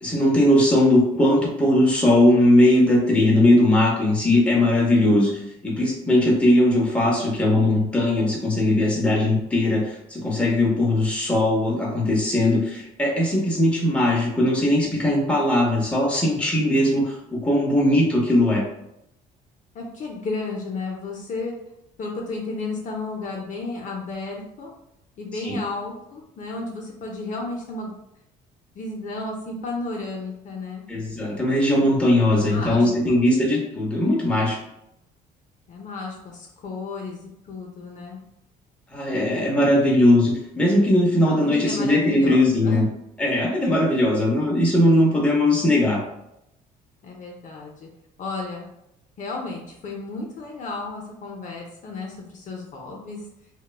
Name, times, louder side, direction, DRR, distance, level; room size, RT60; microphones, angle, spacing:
voice 1, 0.0-18.7 25.4-25.6 30.9-34.6 38.9-42.9 43.2-46.0, left 1 dB, 5° left, -3 dB, 0.7 m, -19 dB
voice 2, 19.7-21.5 22.0-24.7 25.2-27.9 28.8-30.8 32.3-33.2 35.7-38.2 41.3-42.9 47.0-47.9 48.2-48.7 49.2-53.2, left 3 dB, 50° left, 0 dB, 0.5 m, -33 dB
2.9 x 2.1 x 2.3 m, 0.80 s
cardioid pair, 110°, 17 cm